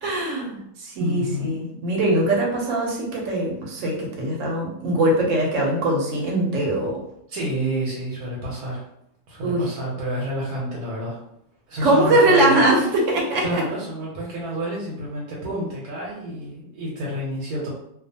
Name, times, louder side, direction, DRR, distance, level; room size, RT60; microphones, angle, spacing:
voice 1, 0.0-7.0 9.4-9.7 11.8-13.6, right 1 dB, 60° right, -1 dB, 1.0 m, -21 dB
voice 2, 1.0-1.6 7.3-8.8 9.3-11.2 11.7-12.6 13.4-17.7, right 1 dB, 85° right, -4 dB, 1.2 m, -29 dB
2.4 x 2.3 x 2.7 m, 0.75 s
omnidirectional pair, 1.6 m